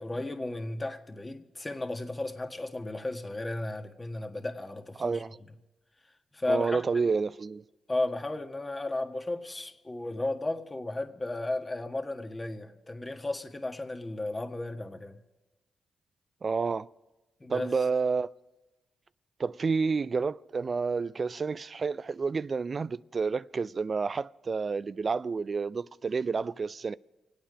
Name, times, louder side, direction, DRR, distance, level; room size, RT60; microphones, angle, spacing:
voice 1, 0.0-5.2 6.3-7.1 7.9-15.2 17.4-17.9, left 2 dB, 25° left, 1.5 m, -34 dB
voice 2, 5.0-5.4 6.5-7.6 16.4-16.9 17.5-18.3 19.4-27.0, right 4 dB, 45° right, 0.4 m, -29 dB
26.0 x 8.9 x 5.0 m
supercardioid pair, 50°, 0 cm